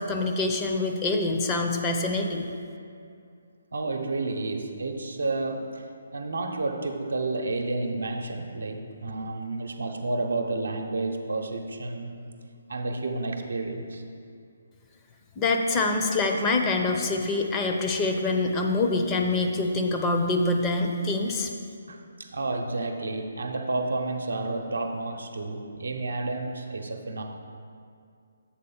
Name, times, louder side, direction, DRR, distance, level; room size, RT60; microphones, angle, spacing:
voice 1, 0.0-2.5 15.4-21.5, left 2 dB, 20° left, 3 dB, 0.5 m, -25 dB
voice 2, 3.7-12.2 12.7-14.0 21.9-27.2, right 2 dB, 85° right, 4 dB, 0.7 m, -31 dB
7.6 x 3.8 x 5.7 m, 2.3 s
hypercardioid pair, 150°, 0 cm